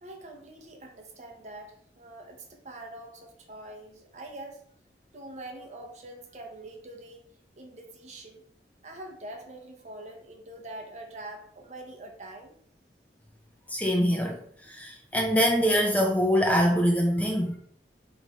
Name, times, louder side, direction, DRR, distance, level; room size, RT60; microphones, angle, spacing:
voice 1, 0.0-4.6 5.1-7.2 7.6-8.4 8.8-12.6, right 1 dB, 40° right, 2 dB, 0.6 m, -44 dB
voice 2, 13.7-14.4 14.7-17.6, equal, 10° left, 1 dB, 0.3 m, -24 dB
3.0 x 2.4 x 3.9 m, 0.62 s
head